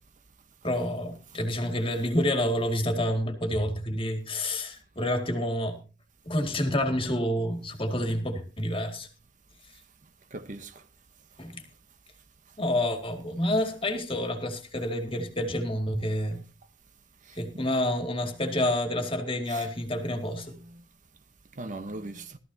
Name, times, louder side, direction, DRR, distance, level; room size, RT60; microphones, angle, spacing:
voice 1, 0.6-5.8 6.3-9.1 11.4-11.6 12.6-16.4 17.4-20.6, left 1 dB, 30° left, 2.2 m, -28 dB
voice 2, 10.3-10.8 17.3-17.6 19.5-20.8 21.6-22.4, right 2 dB, 40° right, 1.0 m, -41 dB
17.5 x 13.5 x 2.8 m
head